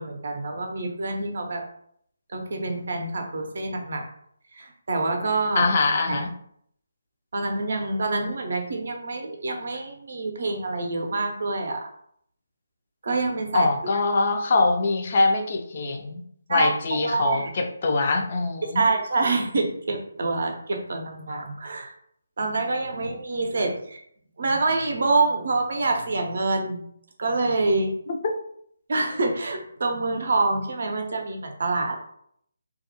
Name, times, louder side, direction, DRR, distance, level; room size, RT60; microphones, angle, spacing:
voice 1, 0.0-1.6 2.3-4.1 4.5-5.7 6.1-6.2 7.3-11.9 13.0-13.7 16.5-16.7 17.0-17.5 18.7-21.9 22.4-24.0 24.4-26.8 27.2-27.9 28.9-32.0, right 3 dB, 55° right, 3 dB, 0.5 m, -26 dB
voice 2, 5.6-6.3 13.5-16.2 16.5-18.9, left 3 dB, 45° left, 4 dB, 0.3 m, -23 dB
2.3 x 2.1 x 2.8 m, 0.68 s
figure-of-eight pair, 150°, 0 cm